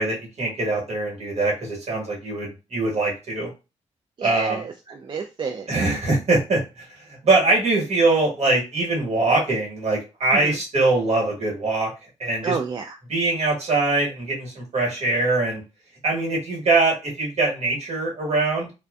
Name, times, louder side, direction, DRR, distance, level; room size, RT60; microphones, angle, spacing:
voice 1, 0.0-3.5 4.2-4.6 5.7-11.9 12.2-12.6 13.1-15.6 16.0-18.7, right 2 dB, 55° right, -2 dB, 1.2 m, -22 dB
voice 2, 4.2-5.7 10.3-10.6 12.4-13.0, right 5 dB, 40° right, 2 dB, 0.3 m, -29 dB
2.6 x 2.1 x 2.3 m, 0.29 s
cardioid pair, 55°, 13 cm